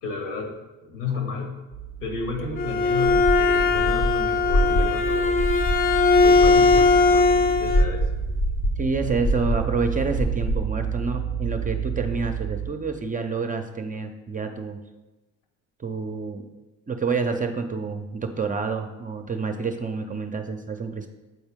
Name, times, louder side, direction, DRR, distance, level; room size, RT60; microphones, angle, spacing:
voice 1, 0.0-0.6 0.8-1.6 2.0-5.3 6.2-8.1, left 4 dB, 70° left, 2 dB, 1.9 m, -32 dB
sound 1, 1.7-12.7, right 9 dB, 90° left, 2.1 m, -32 dB
Bowed string instrument, 2.4-7.9, left 4 dB, 30° left, 0.7 m, -19 dB
sound 2, 3.1-10.6, equal, 50° left, 1.0 m, -27 dB
voice 2, 8.8-14.8 15.8-16.4 16.9-21.1, right 4 dB, 20° right, 5 dB, 0.6 m, -28 dB
8.2 x 4.3 x 3.6 m, 1.1 s
hypercardioid pair, 60°, 42 cm